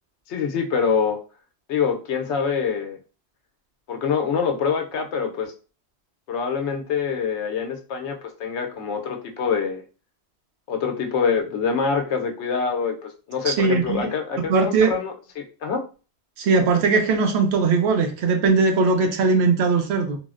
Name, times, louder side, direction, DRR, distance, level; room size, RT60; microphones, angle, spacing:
voice 1, 0.3-1.2 1.7-3.0 3.9-5.5 6.3-9.8 10.7-15.8, left 6 dB, 80° left, 4 dB, 0.9 m, -25 dB
voice 2, 13.5-14.2 14.5-14.9 16.4-20.2, right 4 dB, 70° right, 5 dB, 0.8 m, -20 dB
3.7 x 2.0 x 2.4 m, 0.34 s
omnidirectional pair, 1.2 m